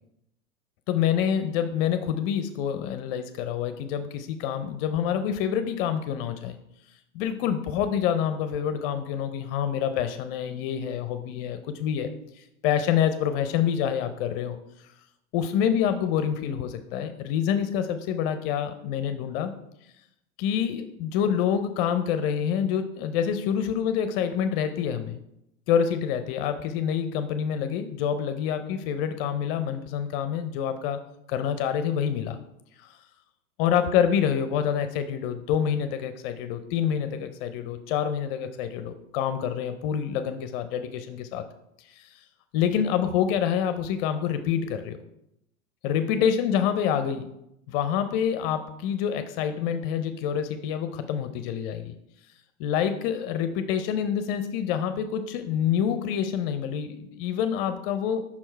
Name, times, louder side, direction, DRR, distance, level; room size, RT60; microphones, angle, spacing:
voice 1, 0.9-6.5 7.1-14.6 15.3-19.5 20.4-25.2 25.7-31.0 31.3-32.4 33.6-41.4 42.0-42.1 42.5-45.0 45.8-47.3 47.7-52.0 52.6-58.3, left 8 dB, 40° left, 9 dB, 0.5 m, -27 dB
5.7 x 4.5 x 4.4 m, 0.81 s
hypercardioid pair, 105°, 43 cm